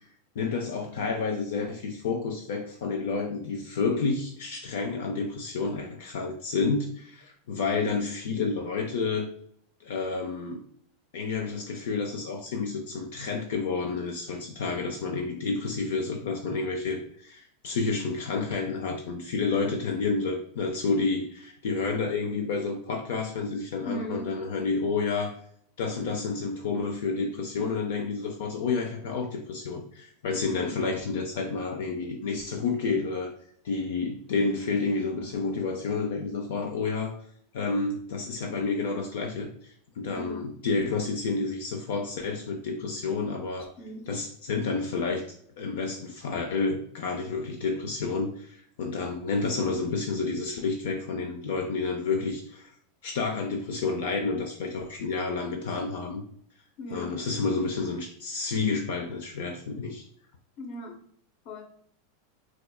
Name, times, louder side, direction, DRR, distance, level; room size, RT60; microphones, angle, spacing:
voice 1, 0.3-9.3 9.8-10.6 11.1-25.4 25.8-33.3 33.6-37.1 37.5-43.7 44.1-45.2 45.6-52.7 53.0-56.2 56.9-60.0, left 4 dB, 80° left, 3 dB, 0.5 m, -30 dB
voice 2, 23.9-24.5 30.5-30.8 40.1-40.6 43.8-44.2 56.8-57.2 60.6-61.0 61.4-61.6, left 1 dB, 50° left, 3 dB, 0.8 m, -38 dB
4.3 x 2.3 x 2.3 m, 0.64 s
supercardioid pair, 135°, 0 cm